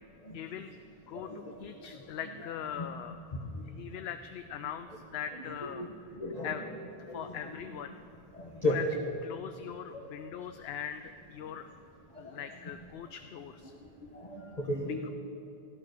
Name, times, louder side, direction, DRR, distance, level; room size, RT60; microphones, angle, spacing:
voice 1, 0.3-0.8 1.1-3.5 3.8-5.9 6.4-6.7 7.1-8.0 8.6-8.8 9.2-11.7 12.2-13.7 15.0-15.1, left 9 dB, 75° left, 9 dB, 0.8 m, -41 dB
voice 2, 1.1-1.5 1.9-2.0 2.4-2.5 2.8-2.9 3.5-3.6 5.8-5.9 6.2-6.5 7.1-7.4 8.3-8.8 14.2-15.1, left 2 dB, 40° left, -4 dB, 1.6 m, -34 dB
14.5 x 12.0 x 6.6 m, 2.7 s
omnidirectional pair, 1.1 m